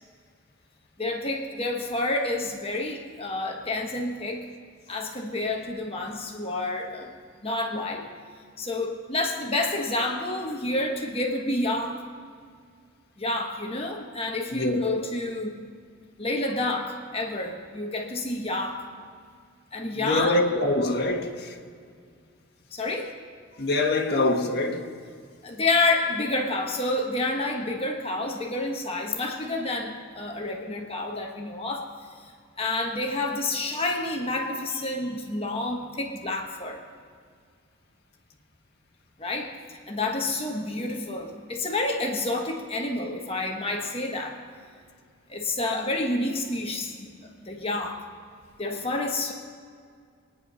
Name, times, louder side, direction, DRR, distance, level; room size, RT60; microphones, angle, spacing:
voice 1, 1.0-4.5 4.9-7.1 7.4-8.1 8.6-12.0 13.2-15.6 16.2-18.9 19.7-20.4 22.7-23.1 25.4-31.9 32.2-32.3 32.6-36.8 39.2-44.4 45.3-47.1 47.4-48.0 48.6-49.3, left 2 dB, 25° left, 1.2 m, -29 dB
voice 2, 14.5-15.1 20.0-21.6 23.6-24.9, left 2 dB, 50° left, 1.5 m, -25 dB
23.0 x 9.8 x 5.6 m
head